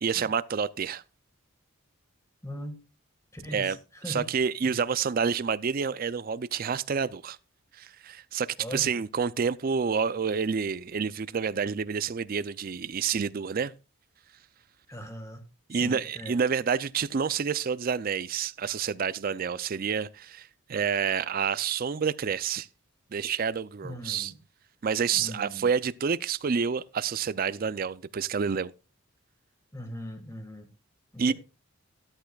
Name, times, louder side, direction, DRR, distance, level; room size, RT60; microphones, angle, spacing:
voice 1, 0.0-1.0 3.5-3.8 4.1-7.4 7.8-13.7 15.7-22.7 23.1-24.3 24.8-28.7 31.2-31.3, right 6 dB, 40° right, 0.4 m, -28 dB
voice 2, 2.4-2.8 3.3-4.3 4.6-4.8 8.6-9.0 14.9-15.4 15.7-16.4 23.8-24.4 25.1-25.7 29.7-30.7 31.1-31.3, equal, 15° left, 1.7 m, -40 dB
13.0 x 10.5 x 2.3 m
head